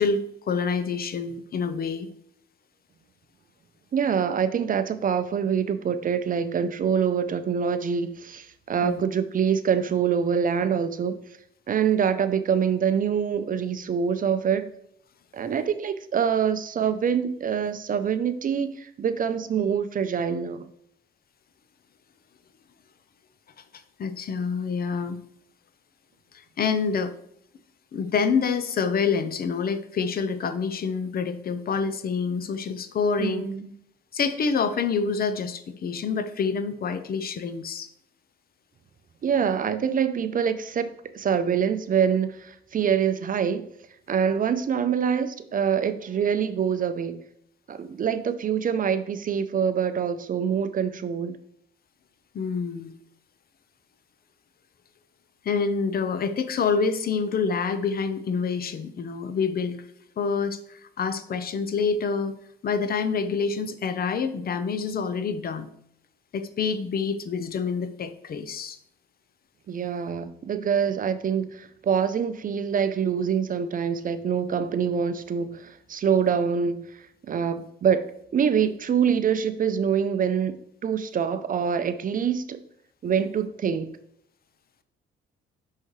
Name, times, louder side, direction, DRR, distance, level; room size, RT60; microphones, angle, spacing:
voice 1, 0.0-2.1 8.8-9.0 24.0-25.2 26.6-27.1 27.9-33.5 34.1-37.9 52.3-52.9 55.4-59.8 60.2-62.3 62.6-65.7 66.3-68.8, left 5 dB, 50° left, 11 dB, 0.7 m, -27 dB
voice 2, 3.9-11.2 11.7-14.7 15.3-20.7 33.2-33.7 39.2-43.7 44.1-47.2 47.7-51.4 69.7-76.9 77.2-80.6 80.8-82.6 83.0-84.0, right 7 dB, 45° right, 12 dB, 0.6 m, -25 dB
6.3 x 5.7 x 3.1 m, 0.71 s
cardioid pair, 90°, 20 cm